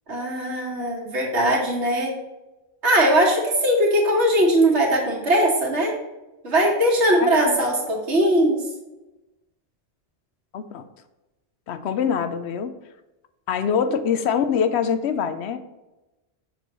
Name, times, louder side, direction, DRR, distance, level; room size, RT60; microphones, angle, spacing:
voice 1, 0.1-2.1 2.8-5.9 6.4-8.6, right 1 dB, 85° right, -1 dB, 1.8 m, -20 dB
voice 2, 7.2-7.6 10.5-10.9 11.7-12.7 13.5-15.6, left 7 dB, 75° left, 10 dB, 0.8 m, -24 dB
6.7 x 6.3 x 3.0 m, 1.0 s
omnidirectional pair, 1.1 m